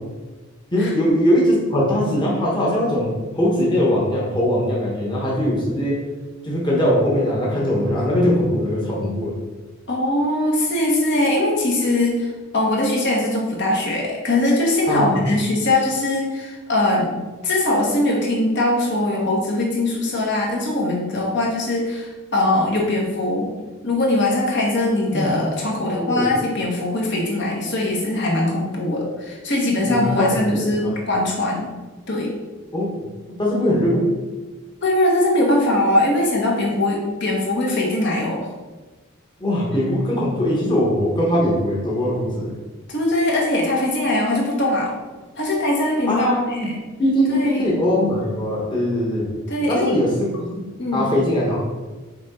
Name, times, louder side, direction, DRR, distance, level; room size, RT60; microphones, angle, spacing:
voice 1, 0.7-6.0 6.4-9.4 14.9-15.2 25.1-25.3 25.9-26.3 29.9-30.9 32.7-32.9 33.4-34.1 39.4-42.5 46.1-46.7 47.0-49.4 49.7-50.7 50.9-51.6, equal, 25° left, -4 dB, 1.1 m, -21 dB
voice 2, 9.9-17.1 17.4-23.5 23.8-31.7 32.1-32.3 34.8-38.5 42.9-44.9 45.4-46.7 47.3-47.6 49.5-50.0 50.8-51.1, left 1 dB, 60° left, -2 dB, 1.4 m, -21 dB
6.0 x 4.0 x 4.3 m, 1.3 s
head